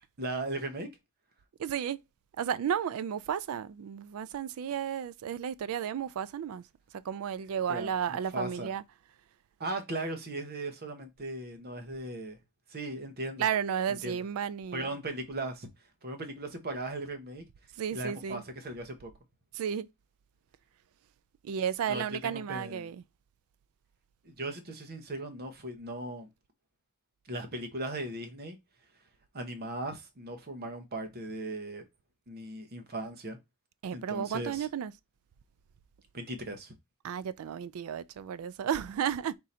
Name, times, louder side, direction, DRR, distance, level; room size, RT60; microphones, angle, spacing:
voice 1, 0.2-0.9 7.7-8.7 9.6-12.4 12.7-13.4 13.9-14.2 14.7-15.7 16.0-17.4 17.9-19.1 21.9-22.9 24.2-26.3 27.2-28.6 29.3-31.8 32.3-33.4 33.9-34.7 36.1-36.7, right 2 dB, 45° right, 0.9 m, -38 dB
voice 2, 1.6-2.0 2.4-6.6 7.0-8.8 13.4-14.9 17.8-18.4 19.5-19.9 21.4-23.0 33.8-34.9 37.0-39.4, right 8 dB, 70° right, 0.3 m, -33 dB
3.7 x 2.6 x 4.2 m
head